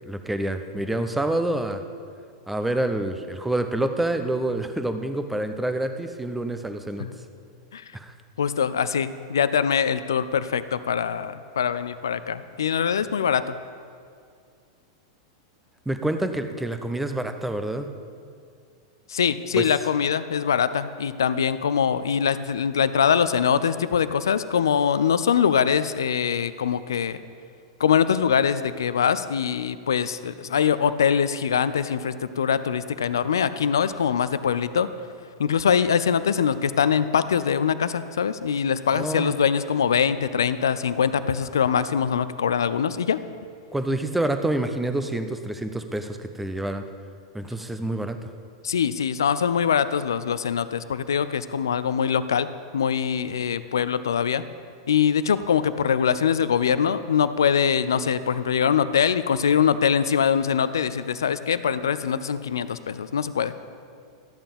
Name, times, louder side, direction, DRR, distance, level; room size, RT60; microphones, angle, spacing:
voice 1, 0.1-1.8 2.5-7.1 7.9-8.1 15.9-17.9 19.5-19.7 38.9-39.4 43.7-46.8 47.3-48.2, right 1 dB, 5° right, 8 dB, 0.8 m, -27 dB
voice 2, 8.4-13.5 19.1-27.2 27.8-34.9 35.4-43.2 48.6-52.5 52.7-54.4 54.9-63.5, left 7 dB, 70° left, 14 dB, 0.5 m, -23 dB
13.0 x 8.9 x 5.2 m, 2.3 s
figure-of-eight pair, 95°, 2 cm